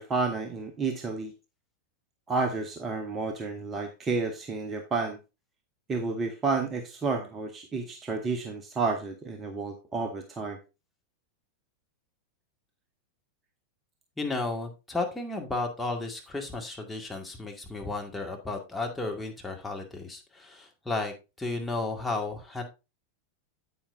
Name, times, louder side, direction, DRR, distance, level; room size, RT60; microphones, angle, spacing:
voice 1, 0.0-1.3 2.3-5.2 5.9-10.6, right 4 dB, 20° right, 6 dB, 1.1 m, -31 dB
voice 2, 14.2-22.6, left 3 dB, 5° left, 1 dB, 2.1 m, -33 dB
9.5 x 8.7 x 2.6 m, 0.27 s
figure-of-eight pair, 90°, 0 cm